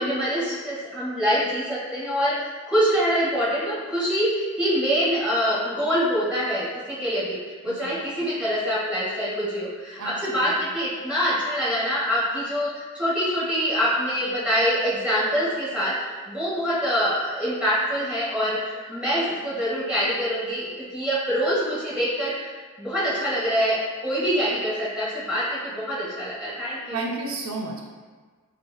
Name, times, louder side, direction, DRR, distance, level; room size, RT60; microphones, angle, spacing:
voice 1, 0.0-7.4 7.6-15.9 16.3-22.5 22.8-27.0, equal, 5° right, -11 dB, 1.2 m, -25 dB
voice 2, 10.0-10.7 26.9-27.8, right 3 dB, 85° right, 0 dB, 0.4 m, -32 dB
3.8 x 2.6 x 2.3 m, 1.5 s
head